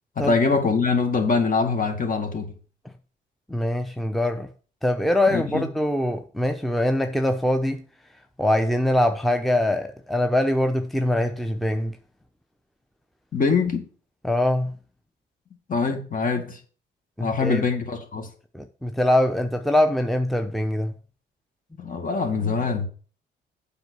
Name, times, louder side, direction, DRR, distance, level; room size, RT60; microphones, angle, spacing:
voice 1, 0.2-2.5 5.3-5.6 13.3-13.8 15.7-16.6 17.2-18.3 21.8-22.9, left 4 dB, 45° left, 2.1 m, -23 dB
voice 2, 3.5-4.5 4.8-7.8 8.4-12.0 14.2-14.7 17.2-17.6 18.5-20.9, left 1 dB, ahead, 0.8 m, -23 dB
7.9 x 5.4 x 6.3 m
cardioid pair, 90°, 20 cm